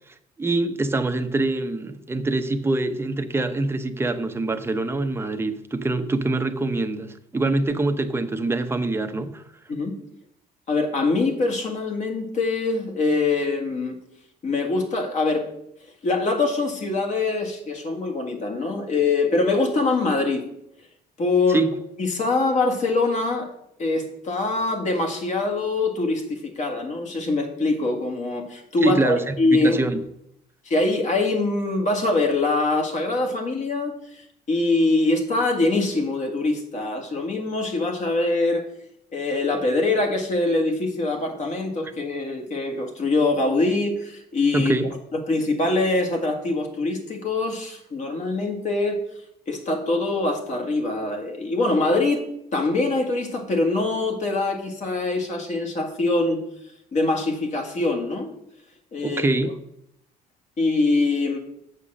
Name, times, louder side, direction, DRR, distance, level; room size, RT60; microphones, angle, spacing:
voice 1, 0.4-9.4 21.5-21.7 28.8-30.0 44.5-44.9 59.0-59.5, right 2 dB, 15° right, 0.8 m, -24 dB
voice 2, 10.7-14.0 14.4-15.5 16.0-20.4 21.2-21.6 22.0-23.5 23.8-29.8 30.7-38.7 39.1-44.7 45.1-49.0 49.5-52.2 52.5-56.4 56.9-58.3 58.9-59.3 60.6-61.4, left 3 dB, 45° left, 1.8 m, -23 dB
7.5 x 5.6 x 6.3 m
cardioid pair, 110°, 17 cm